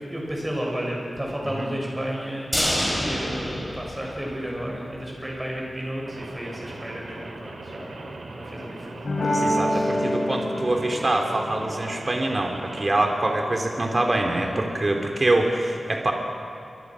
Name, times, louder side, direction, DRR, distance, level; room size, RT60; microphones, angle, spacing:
voice 1, 0.0-2.5 2.9-9.0 9.7-9.9 14.3-14.7, equal, 15° right, -2 dB, 7.0 m, -32 dB
sound 1, 2.5-4.7 5.0-5.1 5.4-5.5, equal, 5° left, 6.3 m, -27 dB
Rain, 6.0-12.9, right 2 dB, 90° right, 3.0 m, -40 dB
sound 2, 9.0-14.1, left 1 dB, 60° left, 7.4 m, -28 dB
voice 2, 9.2-16.1, right 2 dB, 35° right, 2 dB, 2.9 m, -24 dB
28.0 x 25.5 x 6.3 m, 2.7 s
wide cardioid pair, 125°, 0 cm